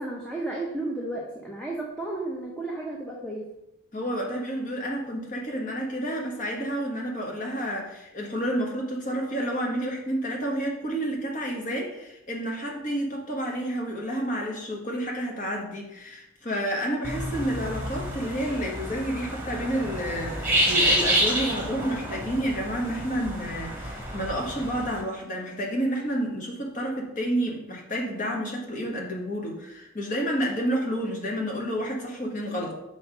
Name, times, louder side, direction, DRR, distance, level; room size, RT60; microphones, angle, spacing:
voice 1, 0.0-3.5, right 2 dB, 5° left, -3 dB, 0.7 m, -33 dB
voice 2, 3.9-32.8, equal, 40° left, 0 dB, 1.3 m, -30 dB
sound 1, 17.0-25.0, right 1 dB, 10° right, 1.3 m, -28 dB
5.8 x 4.3 x 5.0 m, 0.89 s
head